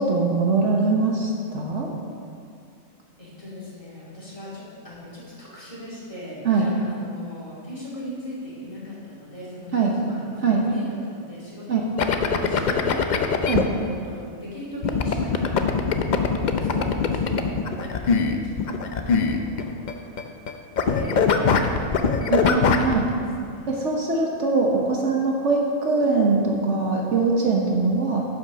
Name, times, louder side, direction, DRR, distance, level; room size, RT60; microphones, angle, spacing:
voice 1, 0.0-1.9 6.4-6.7 9.7-9.9 10.4-10.6 11.7-11.8 13.5-13.6 22.3-23.0 23.7-28.2, right 4 dB, 60° right, -1 dB, 1.3 m, -22 dB
voice 2, 3.2-15.9 16.4-19.8 20.8-23.8, left 1 dB, 25° left, -7 dB, 2.7 m, -39 dB
sound 1, 12.0-13.6 14.8-19.9 20.2-20.5 20.8-22.9, left 5 dB, 55° left, 0.5 m, -22 dB
10.0 x 5.8 x 6.2 m, 2.3 s
omnidirectional pair, 1.4 m